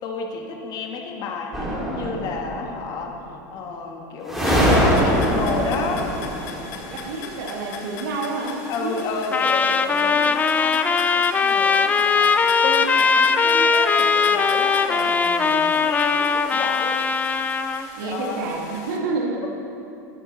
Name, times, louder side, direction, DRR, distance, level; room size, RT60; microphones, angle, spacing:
voice 1, 0.0-6.1 8.7-15.3 15.7-17.0 18.0-18.5, left 4 dB, 45° left, 2 dB, 1.6 m, -31 dB
sound 1, 1.5-2.7 4.3-7.1, equal, ahead, 2.5 m, -22 dB
sound 2, 4.4-19.0, left 5 dB, 60° left, 1.5 m, -39 dB
voice 2, 6.9-9.1 14.9-15.7 18.0-19.5, right 3 dB, 80° right, -1 dB, 1.9 m, -29 dB
Trumpet, 9.3-17.9, left 5 dB, 15° left, 0.4 m, -20 dB
11.5 x 10.5 x 4.1 m, 2.8 s
supercardioid pair, 120°, 10 cm